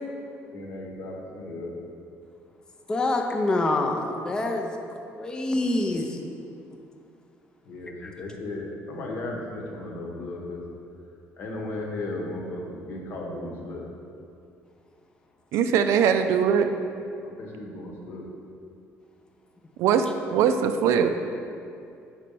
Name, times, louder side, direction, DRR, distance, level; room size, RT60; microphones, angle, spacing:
voice 1, 0.5-1.7 7.6-10.6 11.4-13.9 17.2-18.2, left 2 dB, 55° left, 0 dB, 0.9 m, -35 dB
voice 2, 2.9-4.7 5.1-6.2 7.8-8.1, left 2 dB, 15° left, 3 dB, 0.4 m, -26 dB
voice 3, 15.5-16.7 19.8-21.2, right 7 dB, 80° right, 8 dB, 0.3 m, -21 dB
4.4 x 4.2 x 5.3 m, 2.5 s
cardioid pair, 150°, 5 cm